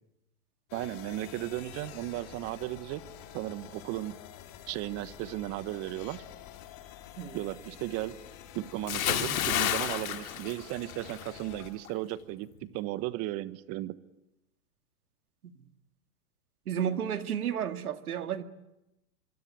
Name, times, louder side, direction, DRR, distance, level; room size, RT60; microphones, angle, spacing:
sound 1, 0.7-11.7, left 11 dB, 40° left, 4.2 m, -48 dB
voice 1, 0.7-3.0 3.3-4.2 4.7-6.2 7.3-8.2 8.5-13.9, right 16 dB, 35° right, 15 dB, 1.3 m, -35 dB
Bathtub (filling or washing) / Splash splatter, 8.9-11.3 11.6-11.9, left 11 dB, 70° left, 3.2 m, -30 dB
voice 2, 16.7-18.4, right 9 dB, 80° right, 9 dB, 2.2 m, -32 dB
25.0 x 25.0 x 9.1 m, 0.91 s
hypercardioid pair, 130°, 43 cm